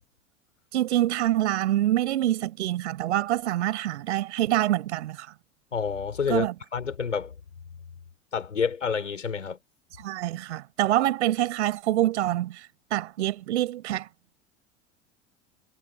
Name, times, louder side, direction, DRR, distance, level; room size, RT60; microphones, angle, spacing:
voice 1, 0.7-5.3 6.3-6.5 10.0-14.1, right 14 dB, 70° right, 5.3 m, -26 dB
voice 2, 5.7-7.3 8.3-9.6, left 6 dB, 85° left, 6.1 m, -29 dB
figure-of-eight pair, 80°, 36 cm